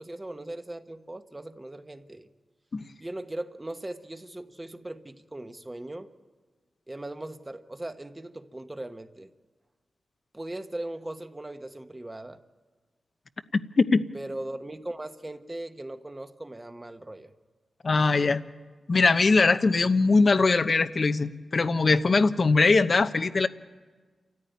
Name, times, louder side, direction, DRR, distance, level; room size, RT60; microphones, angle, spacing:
voice 1, 0.0-2.3 3.0-6.1 6.9-9.3 10.3-12.4 14.1-17.3, right 1 dB, 20° right, 8 dB, 1.2 m, -39 dB
voice 2, 13.5-14.1 17.8-18.4 18.9-23.5, left 3 dB, 50° left, 11 dB, 0.9 m, -21 dB
28.5 x 14.0 x 9.5 m, 1.4 s
cardioid pair, 80°, 0 cm